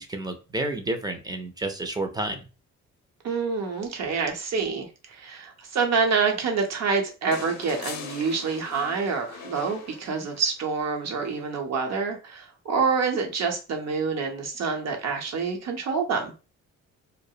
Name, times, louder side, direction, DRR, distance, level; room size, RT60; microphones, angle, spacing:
voice 1, 0.0-2.4, right 2 dB, 15° right, 5 dB, 0.4 m, -30 dB
voice 2, 3.2-16.3, right 5 dB, 60° right, 2 dB, 0.8 m, -27 dB
sound 1, 7.3-10.7 12.2-12.3, left 6 dB, 60° left, 0.5 m, -41 dB
2.3 x 2.0 x 2.7 m, 0.32 s
cardioid pair, 90°, 30 cm